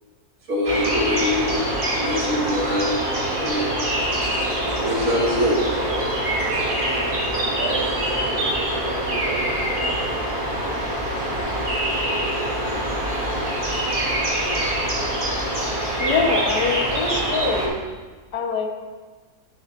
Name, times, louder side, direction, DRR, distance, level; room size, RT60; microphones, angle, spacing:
voice 1, 0.5-1.5 2.0-3.0 3.4-3.7 4.8-5.6, left 1 dB, 55° right, -4 dB, 2.4 m, -23 dB
sound 1, 0.7-17.7, right 1 dB, 30° right, 1.9 m, -24 dB
voice 2, 7.6-8.4 9.0-10.2, right 6 dB, 80° right, 3 dB, 1.3 m, -33 dB
voice 3, 16.0-17.8 18.3-18.8, left 4 dB, 85° left, 1 dB, 1.7 m, -24 dB
10.5 x 9.8 x 2.6 m, 1.4 s
omnidirectional pair, 1.7 m